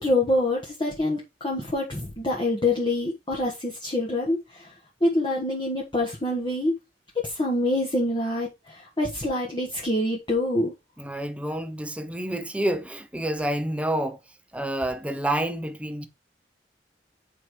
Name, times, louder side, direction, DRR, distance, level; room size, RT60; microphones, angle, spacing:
voice 1, 0.0-4.7 5.0-6.7 7.1-10.7, left 1 dB, 25° left, 1.4 m, -26 dB
voice 2, 11.0-14.2 14.5-16.1, right 1 dB, 5° right, 0.8 m, -28 dB
8.4 x 4.8 x 3.3 m
head